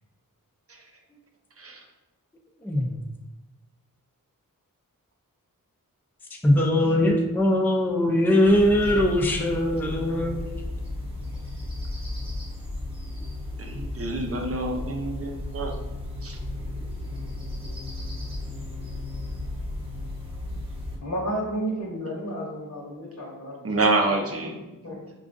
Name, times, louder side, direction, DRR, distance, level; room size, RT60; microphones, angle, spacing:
voice 1, 2.6-3.0 6.4-10.4, left 1 dB, 5° left, 1 dB, 0.4 m, -21 dB
sound 1, 8.4-21.0, left 2 dB, 15° right, 1.0 m, -34 dB
voice 2, 13.6-15.7 16.2-16.4 23.6-24.5 24.9-25.0, right 2 dB, 45° right, 2 dB, 0.6 m, -27 dB
voice 3, 21.0-23.7 24.4-24.5 24.8-25.0, right 1 dB, 55° left, -4 dB, 0.9 m, -31 dB
5.0 x 2.3 x 2.5 m, 1.0 s
wide cardioid pair, 55°, 34 cm